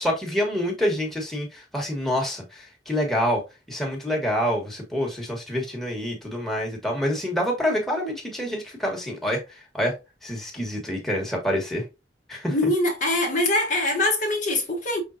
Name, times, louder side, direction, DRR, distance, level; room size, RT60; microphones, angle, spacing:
voice 1, 0.0-3.4 3.7-9.4 9.7-9.9 10.2-11.8 12.3-12.7, equal, ahead, 1.2 m, -27 dB
voice 2, 12.5-15.0, left 1 dB, 45° left, 0.9 m, -23 dB
5.2 x 3.4 x 2.6 m
head